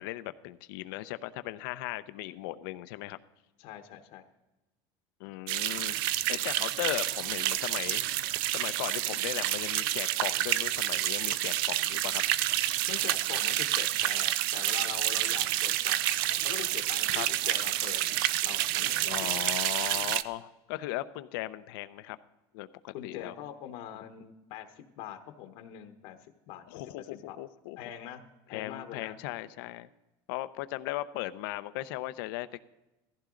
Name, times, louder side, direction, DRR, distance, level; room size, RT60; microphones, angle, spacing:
voice 1, 0.0-3.2 5.2-6.0 6.3-8.0 8.5-12.2 17.1-17.3 19.1-22.2 22.5-23.4 26.7-27.8 28.5-29.9 30.3-32.7, left 16 dB, 85° left, 13 dB, 0.7 m, -37 dB
voice 2, 3.6-4.2 12.9-16.2 16.4-19.4 22.9-27.4 27.8-29.2, left 11 dB, 65° left, 7 dB, 1.1 m, -44 dB
sound 1, 5.5-20.2, right 14 dB, 90° right, 0.5 m, -29 dB
17.0 x 14.5 x 3.8 m, 1.0 s
cardioid pair, 165°, 11 cm